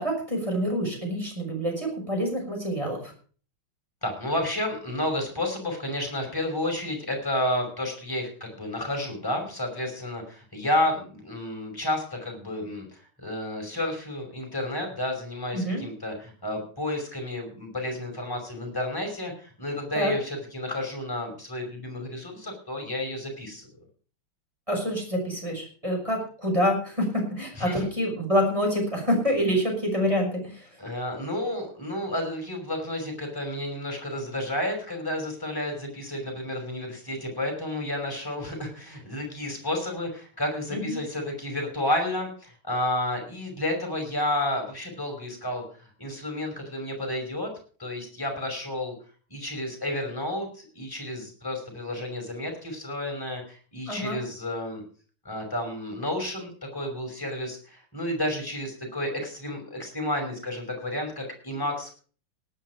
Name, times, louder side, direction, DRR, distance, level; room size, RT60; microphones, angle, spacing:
voice 1, 0.0-3.1 15.5-15.8 19.9-20.2 24.7-30.7 40.7-41.0 53.9-54.2, equal, 15° right, 1 dB, 5.9 m, -27 dB
voice 2, 4.0-23.7 27.6-27.9 30.8-47.5 47.8-48.9 49.3-54.8 55.2-61.9, left 1 dB, 10° left, 3 dB, 5.7 m, -31 dB
18.5 x 9.1 x 4.8 m, 0.41 s
omnidirectional pair, 2.4 m